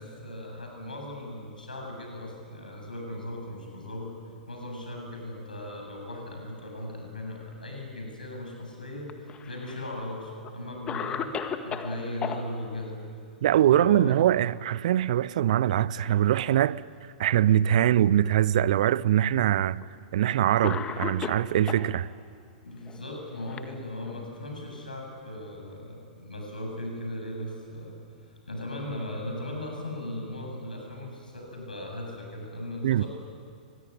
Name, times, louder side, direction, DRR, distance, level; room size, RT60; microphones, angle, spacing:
voice 1, 0.0-4.1 4.5-11.3 11.6-13.0 13.6-14.1 22.6-28.0 28.2-33.1, left 1 dB, 80° left, 7.8 m, -38 dB
Cough, 9.0-9.9 10.4-10.5 10.9-12.4 14.3-14.7 15.0-15.1 16.0-16.7 17.4-17.5 18.6-18.7 19.8-20.0 20.6-21.9 22.8-24.3, left 7 dB, 20° left, 1.8 m, -36 dB
voice 2, 13.4-16.8 17.2-19.8 20.1-22.1 32.8-33.0, right 11 dB, 55° right, 0.6 m, -23 dB
24.5 x 21.5 x 9.7 m
figure-of-eight pair, 105°, 5 cm